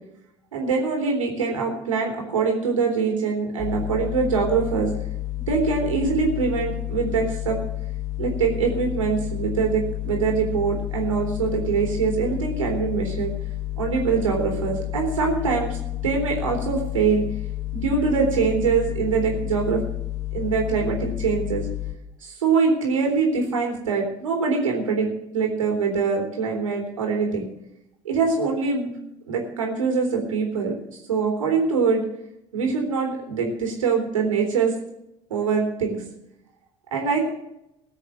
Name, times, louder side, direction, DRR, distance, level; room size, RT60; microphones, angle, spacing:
voice 1, 0.5-4.9 5.5-7.6 8.2-13.3 13.8-15.8 16.0-17.2 17.7-19.8 20.3-21.7 22.2-27.5 28.0-28.9 29.3-32.0 32.5-34.7 35.3-36.0 36.9-37.3, right 5 dB, 85° right, 1 dB, 3.7 m, -23 dB
sound 1, 3.6-21.9, left 15 dB, 70° left, 1.9 m, -30 dB
19.5 x 6.6 x 7.5 m, 0.84 s
hypercardioid pair, 65°, 17 cm